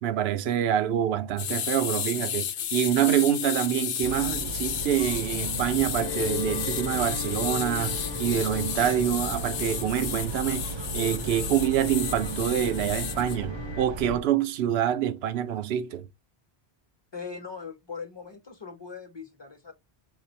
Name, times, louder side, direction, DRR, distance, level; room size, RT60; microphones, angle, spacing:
voice 1, 0.0-16.1, right 10 dB, 75° right, 0.8 m, -26 dB
sound 1, 1.4-13.4, left 9 dB, 75° left, 0.8 m, -33 dB
sound 2, 4.0-14.2, right 3 dB, 40° right, 0.4 m, -36 dB
sound 3, 6.0-13.9, left 7 dB, 45° left, 0.3 m, -39 dB
voice 2, 17.1-19.7, left 5 dB, 25° left, 0.9 m, -40 dB
4.5 x 2.5 x 4.1 m
omnidirectional pair, 1.1 m